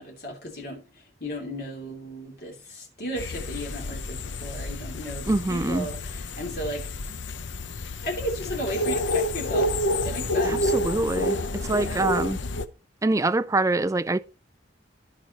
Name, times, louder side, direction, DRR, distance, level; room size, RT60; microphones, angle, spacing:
voice 1, 0.0-6.9 8.0-9.8 10.0-10.7 11.8-12.2, equal, 55° left, 2.9 m, -35 dB
sound 1, 3.2-12.7, left 1 dB, 85° left, 0.7 m, -29 dB
voice 2, 5.3-5.9 10.4-11.4 11.6-12.4 13.0-14.2, right 2 dB, 15° right, 0.4 m, -24 dB
15.0 x 5.0 x 2.9 m
head